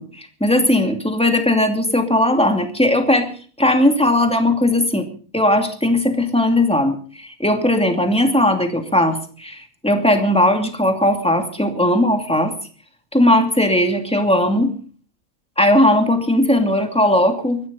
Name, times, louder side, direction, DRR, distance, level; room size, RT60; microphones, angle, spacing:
voice 1, 0.0-3.3 3.6-5.1 5.3-12.5 13.1-14.7 15.6-17.6, left 1 dB, 5° left, 4 dB, 2.5 m, -18 dB
22.0 x 14.5 x 4.0 m, 0.41 s
omnidirectional pair, 1.5 m